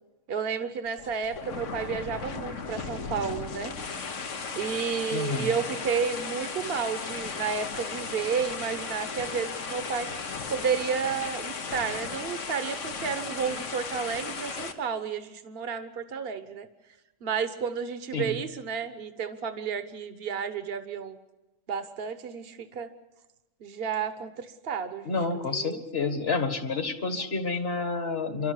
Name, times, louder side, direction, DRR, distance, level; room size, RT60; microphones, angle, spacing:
voice 1, 0.3-3.7 4.5-10.1 10.5-16.7 17.2-21.2 21.7-22.9 23.6-25.8, right 6 dB, 50° right, 11 dB, 1.3 m, -31 dB
sound 1, 0.9-14.7, left 5 dB, 75° left, 1.6 m, -36 dB
voice 2, 5.1-5.5 18.1-18.4 25.1-28.5, left 4 dB, 55° left, 8 dB, 1.9 m, -29 dB
26.5 x 12.5 x 9.8 m, 1.0 s
omnidirectional pair, 1.3 m